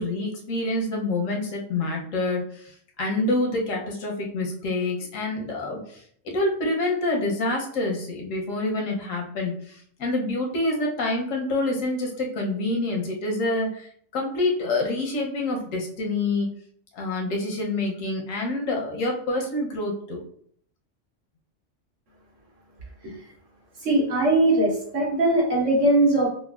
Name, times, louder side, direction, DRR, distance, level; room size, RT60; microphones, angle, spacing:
voice 1, 0.0-6.0 6.3-16.5 16.9-20.2, left 2 dB, 90° left, 1 dB, 1.2 m, -27 dB
voice 2, 23.8-26.3, right 2 dB, 75° right, -4 dB, 1.6 m, -20 dB
5.1 x 2.2 x 2.3 m, 0.62 s
omnidirectional pair, 1.3 m